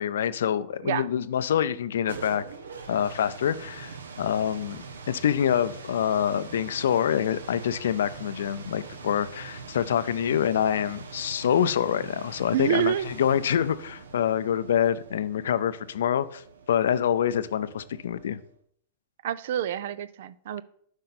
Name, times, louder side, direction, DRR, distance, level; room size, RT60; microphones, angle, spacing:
voice 1, 0.0-2.4 2.9-4.8 5.1-16.4 16.7-18.4, left 9 dB, 75° left, 15 dB, 0.4 m, -26 dB
sound 1, 1.8-18.5, right 5 dB, 85° right, 0.9 m, -43 dB
voice 2, 12.5-13.1 19.2-20.6, right 11 dB, 65° right, 18 dB, 0.4 m, -27 dB
7.9 x 5.3 x 4.2 m, 0.66 s
hypercardioid pair, 105°, 0 cm